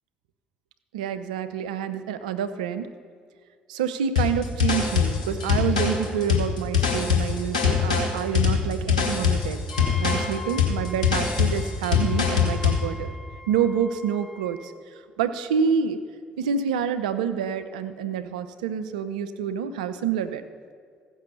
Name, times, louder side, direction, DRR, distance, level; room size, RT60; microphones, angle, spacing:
voice 1, 0.9-2.9 3.7-9.6 10.0-13.1 13.5-14.7 15.2-16.0 16.4-20.4, right 7 dB, 80° right, 11 dB, 0.5 m, -27 dB
sound 1, 4.2-12.8, left 7 dB, 90° left, 1.2 m, -23 dB
Wind instrument woodwind instrument, 9.7-14.7, left 1 dB, 5° left, 1.3 m, -41 dB
15.5 x 6.1 x 6.7 m, 2.1 s
hypercardioid pair, 45°, 4 cm